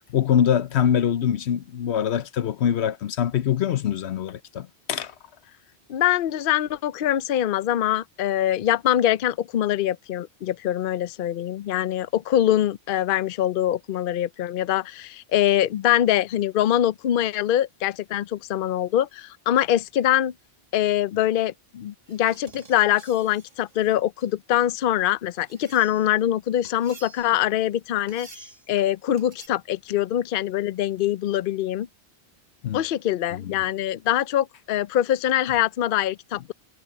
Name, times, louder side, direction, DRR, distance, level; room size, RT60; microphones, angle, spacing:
voice 1, 0.1-5.1 32.6-32.8 33.4-33.5, left 9 dB, 85° left, 1.0 m, -24 dB
voice 2, 5.9-20.3 20.7-31.9 32.7-36.5, left 12 dB, 60° left, 0.7 m, -23 dB
sound 1, 22.0-26.2 26.6-27.5 28.1-28.7 29.2-29.5, right 3 dB, 40° right, 1.8 m, -50 dB
omnidirectional pair, 1.1 m